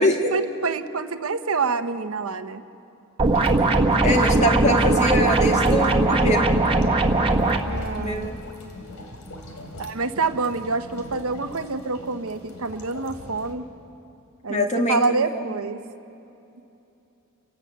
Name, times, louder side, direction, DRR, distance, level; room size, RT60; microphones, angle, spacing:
voice 1, 0.0-2.6 7.7-8.3 9.8-13.7 14.4-15.8, right 4 dB, 70° right, 9 dB, 0.9 m, -27 dB
sound 1, 3.2-13.5, left 1 dB, 75° left, 2.8 m, -42 dB
sound 2, 3.2-7.6, right 2 dB, 25° right, 1.4 m, -19 dB
voice 2, 4.0-6.5 8.0-8.4 14.5-15.0 15.3-15.4, equal, 30° left, 2 dB, 1.8 m, -23 dB
29.5 x 12.0 x 8.2 m, 2.8 s
head